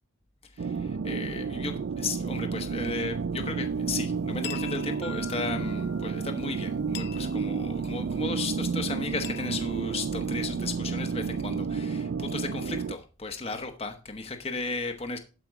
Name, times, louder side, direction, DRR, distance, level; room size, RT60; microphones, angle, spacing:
voice 1, 0.5-15.2, left 3 dB, 30° left, 0.9 m, -35 dB
sound 1, 0.6-12.9, right 5 dB, 60° right, 0.4 m, -31 dB
sound 2, 3.6-10.8, left 11 dB, 50° left, 0.5 m, -47 dB
Marimba xylophone, 5.0-7.2, left 8 dB, 85° left, 1.7 m, -47 dB
12.0 x 5.1 x 4.6 m
head